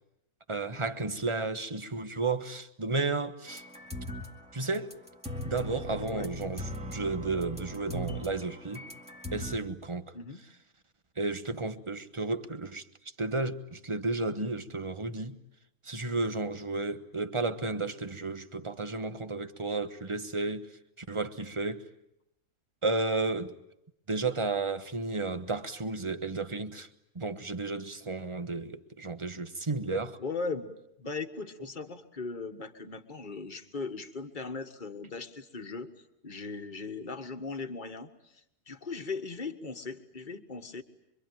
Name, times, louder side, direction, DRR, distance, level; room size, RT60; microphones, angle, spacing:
voice 1, 0.5-3.6 4.5-4.9 5.4-8.8 9.3-10.1 11.2-12.8 13.2-15.4 15.8-20.7 21.0-21.9 22.8-23.5 24.1-26.9 27.1-30.2, right 3 dB, 20° right, 1.1 m, -32 dB
sound 1, 3.5-4.4 4.7-9.6, equal, 5° right, 2.0 m, -39 dB
voice 2, 30.2-30.7 31.0-35.9 36.2-38.3 38.7-40.8, left 4 dB, 35° left, 1.7 m, -38 dB
25.5 x 24.0 x 9.2 m
omnidirectional pair, 1.5 m